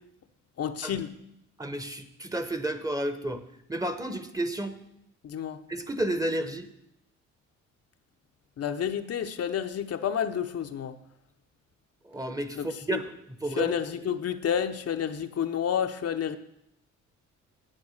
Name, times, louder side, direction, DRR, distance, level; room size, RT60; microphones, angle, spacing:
voice 1, 0.6-1.1 5.2-5.6 8.6-11.0 12.6-13.0 13.6-16.4, left 8 dB, 55° left, 7 dB, 0.8 m, -30 dB
voice 2, 1.6-3.4 3.7-4.8 5.7-6.7 12.0-13.7, right 1 dB, 10° right, 10 dB, 1.0 m, -31 dB
9.8 x 8.0 x 6.4 m, 0.78 s
cardioid pair, 90°, 30 cm